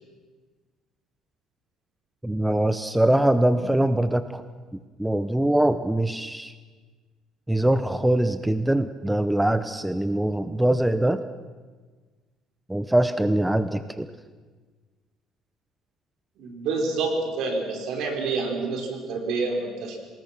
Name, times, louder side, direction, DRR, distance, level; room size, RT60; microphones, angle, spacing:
voice 1, 2.2-4.4 5.0-6.5 7.5-11.2 12.7-14.1, right 1 dB, 5° right, 11 dB, 0.8 m, -23 dB
voice 2, 16.4-20.0, right 3 dB, 70° right, 2 dB, 5.0 m, -28 dB
25.5 x 19.5 x 6.1 m, 1.4 s
cardioid pair, 120°, 0 cm